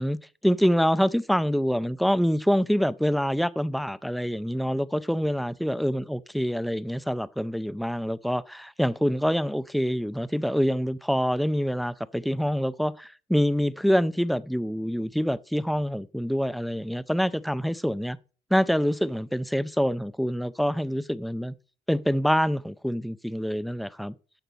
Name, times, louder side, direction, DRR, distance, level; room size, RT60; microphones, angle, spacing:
voice 1, 0.0-18.2 18.5-21.5 21.9-24.1, equal, ahead, 0.4 m, -26 dB
10.0 x 4.1 x 6.8 m
cardioid pair, 110°, 17 cm